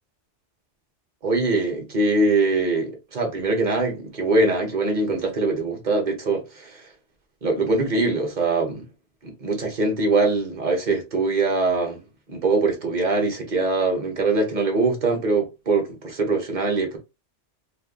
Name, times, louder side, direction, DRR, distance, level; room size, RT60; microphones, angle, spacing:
voice 1, 1.2-6.8 7.4-8.8 9.2-12.0 12.3-17.0, right 3 dB, 40° right, 1.2 m, -23 dB
4.2 x 2.5 x 2.2 m
omnidirectional pair, 1.2 m